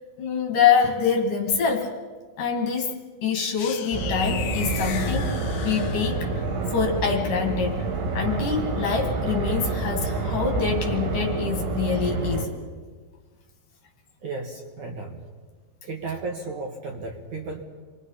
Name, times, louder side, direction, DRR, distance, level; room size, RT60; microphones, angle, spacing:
voice 1, 0.2-1.9 2.4-2.9 3.2-5.4 5.6-6.4 6.7-7.8 8.1-12.5, left 6 dB, 50° left, 2 dB, 3.8 m, -25 dB
sound 1, 3.6-6.4, left 9 dB, 65° left, 2.1 m, -35 dB
sound 2, 3.9-12.5, right 3 dB, 90° right, 5.3 m, -28 dB
voice 2, 14.2-15.2 15.8-17.6, right 3 dB, 55° right, 1 dB, 2.6 m, -34 dB
29.5 x 23.0 x 5.8 m, 1.5 s
omnidirectional pair, 5.1 m